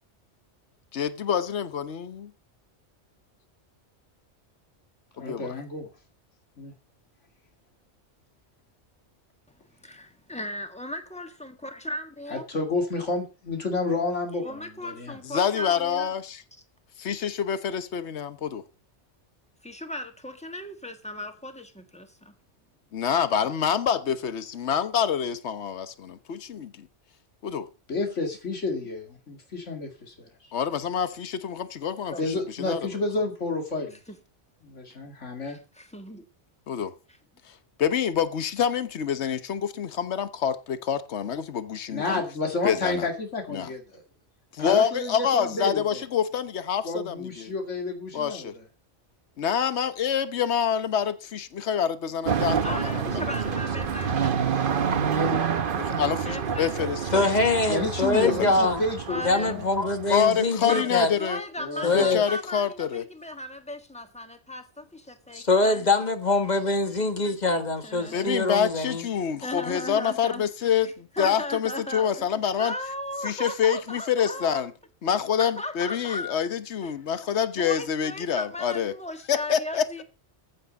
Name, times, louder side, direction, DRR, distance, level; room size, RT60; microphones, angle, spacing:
voice 1, 0.9-2.3 5.2-5.5 15.3-16.4 17.0-18.6 22.9-26.9 27.4-27.7 30.5-32.1 32.6-33.0 36.7-36.9 37.8-42.2 42.6-43.1 43.5-43.7 44.5-47.5 48.1-48.5 49.4-53.2 55.8-57.3 58.2-58.5 60.1-61.4 61.9-63.0 68.1-72.7 73.2-74.7 75.0-78.9 79.3-80.0, left 8 dB, 70° left, 1.3 m, -27 dB
voice 2, 5.2-5.9 6.6-6.7 12.3-15.2 27.9-30.3 32.2-34.0 34.6-35.6 41.9-44.0 44.6-46.0 46.8-48.6 55.1-55.8 57.7-59.7 61.6-62.1, left 3 dB, 85° left, 2.6 m, -30 dB
voice 3, 9.8-12.4 14.4-16.1 19.6-22.3 32.1-32.2 34.1-34.2 35.4-36.2 52.6-54.5 56.2-56.7 59.1-59.6 60.7-60.9 61.2-66.0 67.8-68.4 69.4-70.5 71.1-72.3 72.6-74.7 75.4-76.3 76.8-76.9 77.6-80.0, left 1 dB, 5° left, 1.7 m, -37 dB
sound 1, 52.3-60.3, right 7 dB, 50° right, 1.0 m, -28 dB
voice 4, 57.1-58.8 59.2-61.1 61.8-62.2 65.3-69.1, left 2 dB, 40° left, 1.4 m, -24 dB
14.5 x 8.3 x 5.2 m
omnidirectional pair, 1.2 m